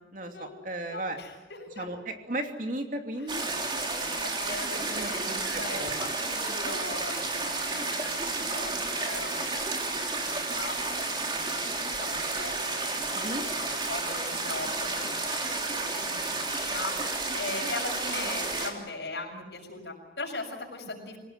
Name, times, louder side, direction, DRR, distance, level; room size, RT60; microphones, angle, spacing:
voice 1, 0.1-1.2 1.8-2.0 2.3-3.4 4.9-6.0 13.1-13.4, right 1 dB, 45° right, 4 dB, 2.8 m, -35 dB
voice 2, 0.9-1.9 3.2-9.4 9.7-21.2, left 3 dB, 70° left, 2 dB, 6.7 m, -40 dB
sound 1, 3.3-18.7, right 3 dB, 25° right, 3.3 m, -31 dB
27.0 x 18.0 x 9.5 m, 1.1 s
head